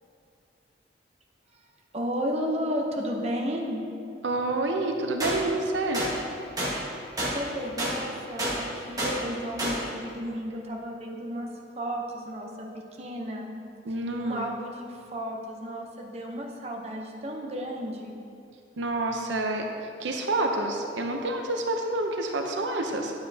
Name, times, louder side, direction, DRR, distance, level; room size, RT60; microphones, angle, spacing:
voice 1, 1.9-3.9 7.3-11.5 11.8-13.5 14.2-18.1, equal, 35° right, 0 dB, 0.8 m, -33 dB
voice 2, 4.2-6.0 13.8-14.5 18.8-19.7 20.0-23.1, right 2 dB, 85° right, 3 dB, 0.7 m, -28 dB
sound 1, 5.2-5.3 5.9-6.1 6.6-6.7 7.2-7.3 7.8-7.9 8.4-8.5 9.0-9.1 9.6-9.7, right 1 dB, 20° right, 1.4 m, -28 dB
9.6 x 7.4 x 2.8 m, 2.5 s
head